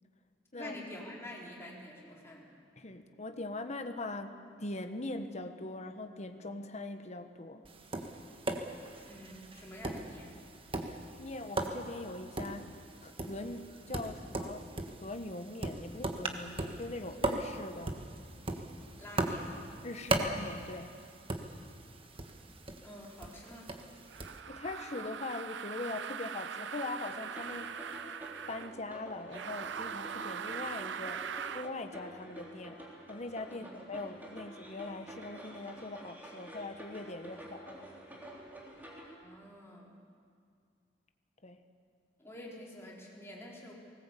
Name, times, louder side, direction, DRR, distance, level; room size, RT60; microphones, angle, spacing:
voice 1, 0.5-2.5 9.0-10.3 19.0-19.5 22.8-23.7 33.6-33.7 37.3-37.8 39.2-39.9 42.2-43.7, left 1 dB, 15° left, -4 dB, 4.3 m, -48 dB
voice 2, 2.8-7.6 10.8-12.7 13.0-14.6 15.0-17.9 19.8-20.9 24.5-27.7 28.5-31.2 31.5-32.8 33.1-37.8 41.4-41.6, left 2 dB, 40° left, 7 dB, 1.2 m, -41 dB
Tap, 7.7-24.4, right 2 dB, 30° right, 1.5 m, -39 dB
sound 1, 24.1-28.8 29.3-31.7, right 7 dB, 85° right, 0.6 m, -41 dB
sound 2, 26.9-39.2, right 1 dB, 10° right, 3.5 m, -49 dB
20.0 x 18.5 x 8.4 m, 2.2 s
head